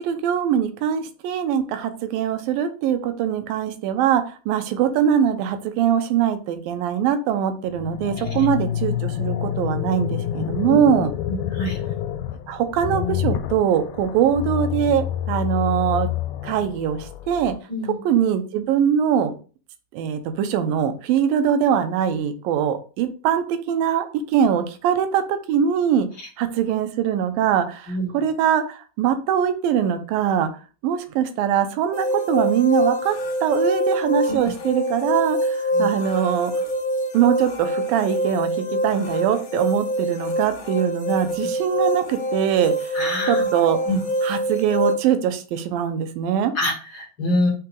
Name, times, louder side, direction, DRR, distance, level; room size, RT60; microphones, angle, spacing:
voice 1, 0.0-11.1 12.5-16.1 16.4-17.5 18.1-19.3 19.9-26.1 26.4-30.5 30.8-36.5 37.1-38.5 38.8-43.0 43.3-43.8 44.2-46.5, right 9 dB, 75° right, 8 dB, 2.6 m, -22 dB
sound 1, 7.7-17.6, left 11 dB, 85° left, 2.4 m, -28 dB
voice 2, 11.2-11.8 17.7-18.0 27.9-28.2 34.3-34.4 35.7-35.9 42.9-43.5 43.8-44.0 46.5-47.5, left 1 dB, 35° left, -1 dB, 2.8 m, -26 dB
sound 2, 31.9-44.9, equal, 65° left, 1.2 m, -25 dB
6.0 x 5.8 x 3.8 m, 0.36 s
omnidirectional pair, 4.2 m